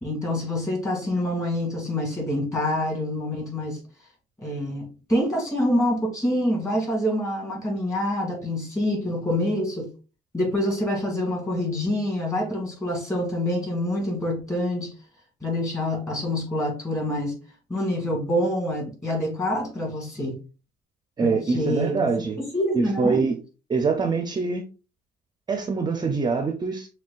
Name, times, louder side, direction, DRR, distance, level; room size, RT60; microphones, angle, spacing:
voice 1, 0.0-3.8 4.4-9.9 10.3-14.9 15.4-17.4 17.7-20.4 21.2-23.2, left 1 dB, 20° left, 2.0 m, -26 dB
voice 2, 21.2-22.4 22.8-23.4 23.7-24.6 25.5-26.9, right 4 dB, 25° right, 0.5 m, -24 dB
6.2 x 2.2 x 2.4 m
cardioid pair, 110°, 17 cm